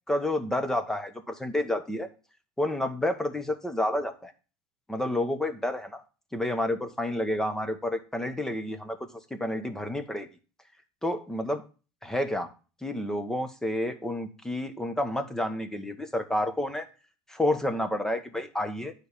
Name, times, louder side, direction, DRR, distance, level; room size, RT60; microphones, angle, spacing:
voice 1, 0.1-2.1 2.6-4.3 4.9-6.0 6.3-9.0 9.3-10.3 11.0-11.6 12.0-12.5 12.8-16.8 17.3-18.9, left 1 dB, 5° left, 9 dB, 1.4 m, -29 dB
9.2 x 4.5 x 6.9 m, 0.34 s
supercardioid pair, 105°, 7 cm